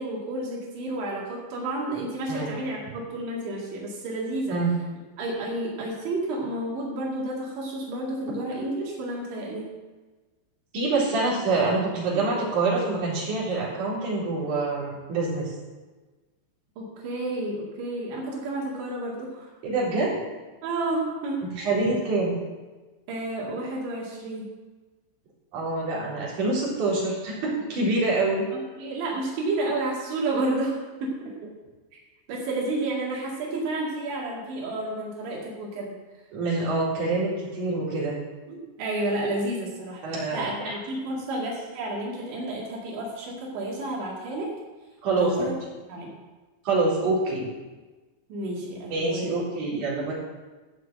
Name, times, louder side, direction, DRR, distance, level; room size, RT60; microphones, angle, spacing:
voice 1, 0.0-4.6 5.2-9.7 16.8-19.5 20.6-21.5 23.1-24.5 28.5-31.4 31.9-32.0 32.3-35.9 38.5-44.5 45.1-45.5 45.9-46.1 48.3-49.4, right 2 dB, 80° right, -4 dB, 4.7 m, -31 dB
voice 2, 10.7-15.4 19.6-20.1 21.6-22.3 25.5-28.4 36.3-38.2 40.0-40.7 45.0-45.4 46.6-47.5 48.9-50.1, right 3 dB, 45° right, -6 dB, 4.9 m, -26 dB
13.5 x 6.4 x 7.8 m, 1.3 s
omnidirectional pair, 5.2 m